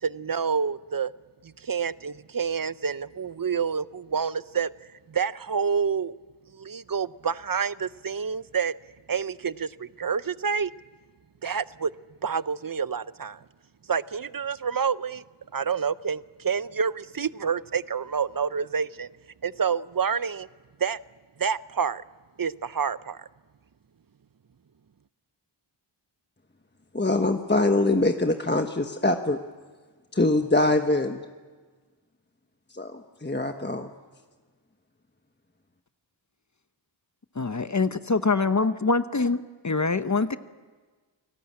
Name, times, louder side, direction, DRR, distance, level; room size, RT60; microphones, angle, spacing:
voice 1, 0.0-1.1 1.4-4.7 5.1-6.1 6.5-8.7 9.1-10.7 11.4-11.9 12.2-13.4 13.9-15.2 15.5-19.1 19.4-20.5 20.8-21.0 21.4-22.0 22.4-23.3, right 6 dB, 45° right, 17 dB, 0.7 m, -28 dB
voice 2, 26.9-29.4 30.1-31.2 32.7-33.9, left 2 dB, 20° left, 5 dB, 1.2 m, -24 dB
voice 3, 37.4-39.4 39.6-40.4, left 3 dB, 40° left, 12 dB, 0.8 m, -24 dB
29.0 x 18.5 x 8.6 m, 1.4 s
wide cardioid pair, 55°, 47 cm